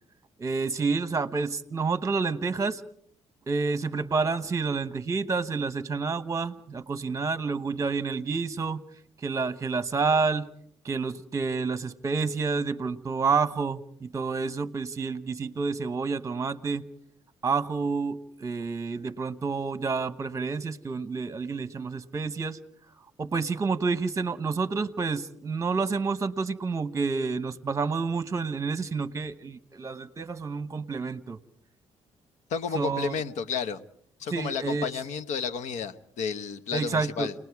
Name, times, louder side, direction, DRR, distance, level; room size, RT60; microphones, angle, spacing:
voice 1, 0.4-2.8 3.5-8.8 9.2-10.5 10.8-16.9 17.4-22.6 23.2-31.4 32.7-33.2 34.3-35.0 36.7-37.3, right 4 dB, 25° right, 1.0 m, -29 dB
voice 2, 32.5-33.8 34.2-37.3, left 6 dB, 85° left, 1.0 m, -32 dB
29.0 x 19.5 x 4.8 m
cardioid pair, 115°, 12 cm